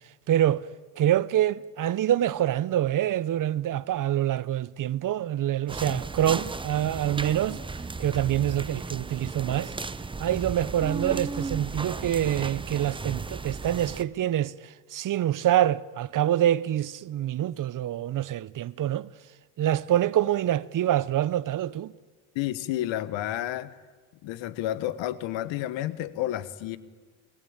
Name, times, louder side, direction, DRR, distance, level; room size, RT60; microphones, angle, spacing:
voice 1, 0.3-0.6 1.0-7.6 8.0-9.7 10.2-19.1 19.6-21.9, right 12 dB, 40° right, 0.8 m, -26 dB
sound 1, 5.7-14.0, right 3 dB, 10° right, 0.8 m, -35 dB
voice 2, 22.3-23.8 24.2-26.8, left 13 dB, 70° left, 1.5 m, -30 dB
28.5 x 19.0 x 8.9 m
supercardioid pair, 95°, 47 cm